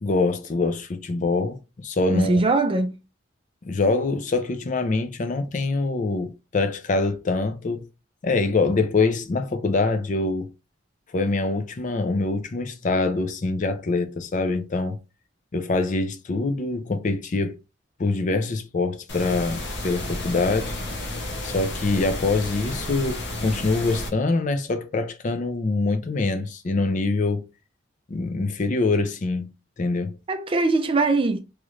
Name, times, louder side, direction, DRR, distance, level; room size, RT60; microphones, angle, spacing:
voice 1, 0.0-2.4 3.6-7.9 8.2-10.5 11.1-15.0 15.5-17.5 18.0-20.7 21.4-27.4 28.1-29.5 29.8-30.1, left 3 dB, 40° left, 0.4 m, -24 dB
voice 2, 2.1-3.0 30.3-31.4, right 2 dB, 25° right, 0.4 m, -21 dB
sound 1, 19.1-24.1, left 1 dB, 60° left, 0.9 m, -32 dB
3.1 x 2.5 x 3.1 m
head